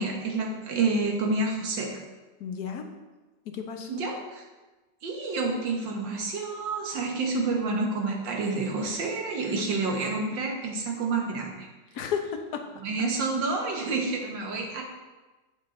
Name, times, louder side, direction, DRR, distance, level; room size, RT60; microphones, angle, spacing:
voice 1, 0.0-2.0 3.9-4.4 5.0-11.7 12.8-14.8, right 3 dB, 80° right, 1 dB, 2.0 m, -29 dB
voice 2, 2.4-2.9 3.5-4.0 11.9-12.6, left 7 dB, 65° left, 4 dB, 1.3 m, -32 dB
8.2 x 6.8 x 3.9 m, 1.2 s
omnidirectional pair, 2.0 m